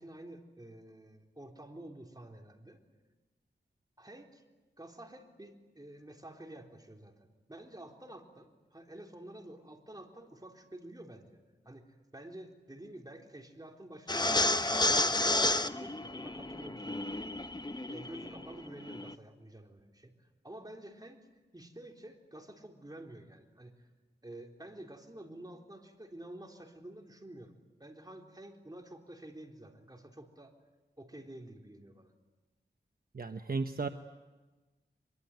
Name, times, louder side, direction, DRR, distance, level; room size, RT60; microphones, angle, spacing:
voice 1, 0.0-2.8 4.0-4.4 4.8-11.4 11.7-17.2 17.9-20.2 20.4-21.2 21.5-23.9 24.2-30.5 31.0-32.1, right 1 dB, 20° right, 2 dB, 3.9 m, -50 dB
sound 1, 14.1-19.1, left 2 dB, 20° left, 1.0 m, -31 dB
voice 2, 33.1-33.9, right 4 dB, 55° right, 7 dB, 1.1 m, -34 dB
24.5 x 23.0 x 9.3 m, 1.2 s
wide cardioid pair, 55°, 19 cm